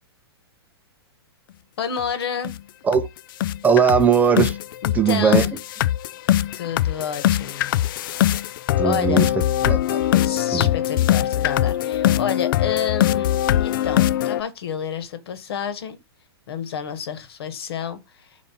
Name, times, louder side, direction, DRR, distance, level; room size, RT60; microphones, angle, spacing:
voice 1, 1.8-2.5 4.8-5.5 6.5-7.7 8.8-9.3 10.2-13.3 13.6-16.0 16.5-18.4, left 7 dB, 70° left, 1.5 m, -29 dB
sound 1, 2.0-2.1 2.4-2.6 2.9-3.1 3.4-14.4, left 12 dB, 55° left, 0.4 m, -21 dB
voice 2, 3.6-4.6 4.9-5.4 8.8-9.3 9.6-10.0 10.5-10.7, right 7 dB, 10° right, 0.5 m, -19 dB
5.4 x 3.7 x 5.4 m
hypercardioid pair, 145°, 14 cm